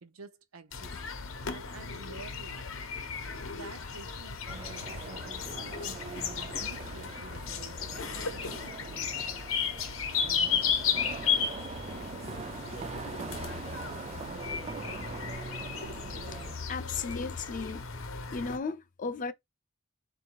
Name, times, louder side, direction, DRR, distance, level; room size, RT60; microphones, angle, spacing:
voice 1, 0.0-0.9 1.5-2.7 3.5-9.3, right 3 dB, 85° right, 0.7 m, -50 dB
sound 1, 0.7-18.6, left 6 dB, 70° left, 0.7 m, -35 dB
sound 2, 4.5-16.6, right 4 dB, 30° right, 0.3 m, -42 dB
voice 2, 16.7-17.9 18.3-19.3, left 4 dB, 40° left, 0.4 m, -35 dB
3.7 x 2.6 x 4.5 m
head